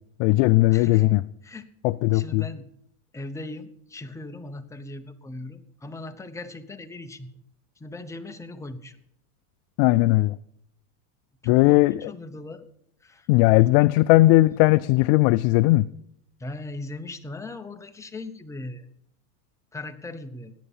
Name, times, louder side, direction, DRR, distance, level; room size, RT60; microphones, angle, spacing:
voice 1, 0.2-1.2 1.8-2.5 9.8-10.4 11.5-12.1 13.3-15.9, left 19 dB, 60° left, 0.5 m, -18 dB
voice 2, 0.7-1.1 1.4-2.7 3.1-7.3 7.8-9.0 11.4-12.7 13.0-13.3 16.4-18.9 19.7-20.5, left 2 dB, 5° left, 0.8 m, -39 dB
17.0 x 9.9 x 5.5 m
supercardioid pair, 130°, 43 cm